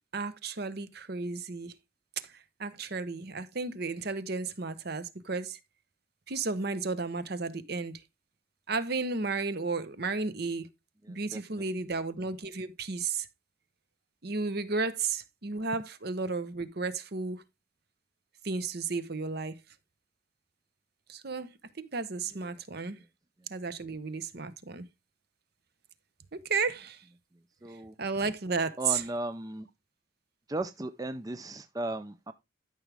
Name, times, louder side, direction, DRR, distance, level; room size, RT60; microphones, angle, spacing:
voice 1, 0.1-1.7 2.2-5.6 6.3-8.0 8.7-10.7 11.1-13.3 14.2-17.4 18.4-19.6 21.1-23.0 23.5-24.9 26.3-27.0 28.0-29.0, right 4 dB, 50° right, 0.9 m, -33 dB
voice 2, 11.1-11.4 27.6-27.9 28.8-29.7 30.5-32.3, right 2 dB, 20° right, 0.4 m, -36 dB
12.5 x 6.1 x 3.4 m
head